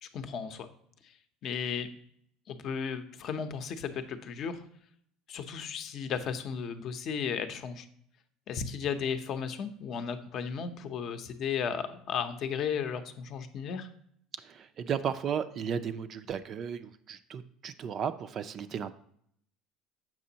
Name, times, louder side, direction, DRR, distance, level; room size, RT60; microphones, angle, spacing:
voice 1, 0.0-0.7 1.0-1.1 1.4-1.9 2.5-4.6 5.3-7.9 8.5-13.9, left 7 dB, 45° left, 9 dB, 0.6 m, -35 dB
voice 2, 14.4-18.9, right 7 dB, 35° right, 11 dB, 0.3 m, -35 dB
7.4 x 6.0 x 2.8 m, 0.68 s
cardioid pair, 150°, 0 cm